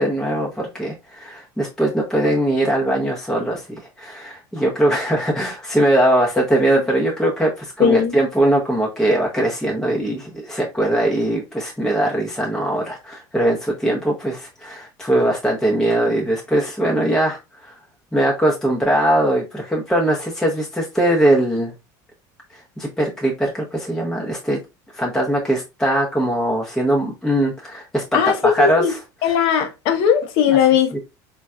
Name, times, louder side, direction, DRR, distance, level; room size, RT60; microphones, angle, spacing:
voice 1, 0.0-3.6 4.0-17.7 18.1-21.7 22.8-24.6 24.9-28.8, right 1 dB, 5° left, 0.7 m, -20 dB
voice 2, 7.8-8.2 28.1-28.9 29.2-31.0, left 8 dB, 65° left, 0.7 m, -18 dB
4.0 x 2.2 x 2.3 m
supercardioid pair, 100°, 10 cm